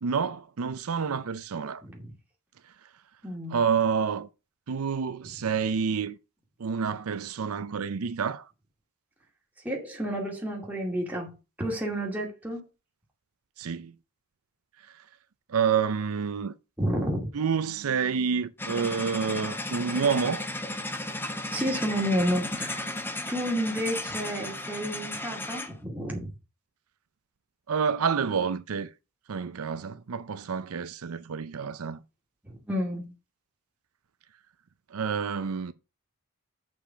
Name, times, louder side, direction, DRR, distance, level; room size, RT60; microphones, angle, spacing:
voice 1, 0.0-1.8 2.6-2.9 3.5-4.3 4.7-6.2 6.6-8.5 13.6-13.9 14.8-15.1 15.5-16.5 17.3-20.5 27.7-28.9 29.3-32.0 34.9-35.7, right 6 dB, 80° right, 0.5 m, -28 dB
voice 2, 3.2-3.6 9.6-12.6 16.8-17.3 21.5-22.9 23.3-26.3 32.4-33.1, equal, 5° right, 2.3 m, -30 dB
sound 1, 18.6-25.7, left 1 dB, 10° left, 0.7 m, -34 dB
6.8 x 5.6 x 5.0 m
head